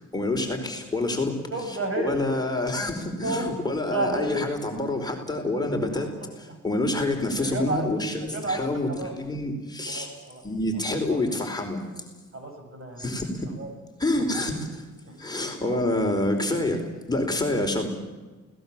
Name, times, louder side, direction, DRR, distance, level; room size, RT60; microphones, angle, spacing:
voice 1, 0.1-10.1 10.4-11.8 13.0-13.5 14.0-14.8 15.2-17.9, left 2 dB, 15° left, 2 dB, 4.5 m, -27 dB
voice 2, 1.5-2.1 2.8-2.9 3.2-3.5 3.9-4.5 5.9-6.0 7.4-7.9 8.2-9.1 9.9-10.4 11.1-11.2 12.3-13.1 13.6-13.7 15.1-15.2, right 2 dB, 45° right, 5 dB, 7.5 m, -31 dB
29.0 x 18.5 x 7.4 m, 1.2 s
cardioid pair, 90°, 30 cm